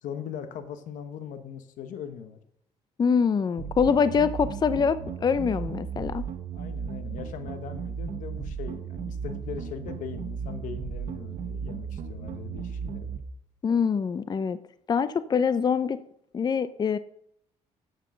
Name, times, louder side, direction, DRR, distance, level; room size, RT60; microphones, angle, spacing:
voice 1, 0.0-2.4 6.5-13.2, left 8 dB, 80° left, 10 dB, 1.0 m, -40 dB
voice 2, 3.0-6.2 13.6-14.6 14.9-16.0 16.3-17.0, left 6 dB, 30° left, 14 dB, 0.5 m, -24 dB
sound 1, 3.6-13.2, right 6 dB, 60° right, 1.0 m, -35 dB
8.2 x 7.5 x 6.2 m, 0.71 s
cardioid pair, 95°, 13 cm